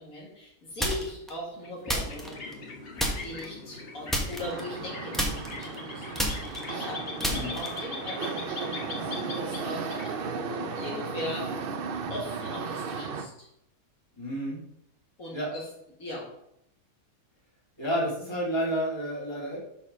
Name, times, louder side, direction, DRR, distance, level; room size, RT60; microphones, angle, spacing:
voice 1, 0.0-2.5 3.2-10.2 10.7-11.5 12.1-13.5 15.2-15.7 16.0-16.3, left 1 dB, 60° left, -4 dB, 2.3 m, -39 dB
sound 1, 0.8-1.3 1.9-2.7 3.0-3.5 4.1-4.9 5.1-7.9, equal, ahead, 1.0 m, -30 dB
sound 2, 1.5-11.9, left 3 dB, 40° left, 1.2 m, -41 dB
sound 3, 4.4-13.3, right 5 dB, 60° right, 0.5 m, -35 dB
voice 2, 7.2-7.6 14.1-14.6 15.3-15.5 17.8-19.6, equal, 15° left, -5 dB, 2.3 m, -30 dB
6.3 x 4.9 x 5.5 m, 0.76 s
omnidirectional pair, 1.6 m